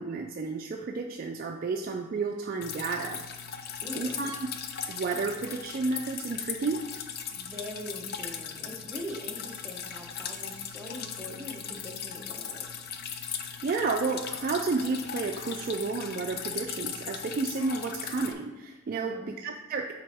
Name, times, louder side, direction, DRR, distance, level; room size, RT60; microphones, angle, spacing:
voice 1, 0.0-3.2 3.9-4.3 4.9-6.8 13.4-19.9, right 4 dB, 40° right, 3 dB, 0.3 m, -31 dB
Drip, 2.6-18.3, left 7 dB, 45° left, 0.4 m, -38 dB
voice 2, 3.8-4.2 7.3-12.7 18.9-19.3, equal, 5° right, -2 dB, 0.9 m, -42 dB
7.8 x 4.2 x 3.4 m, 1.1 s
head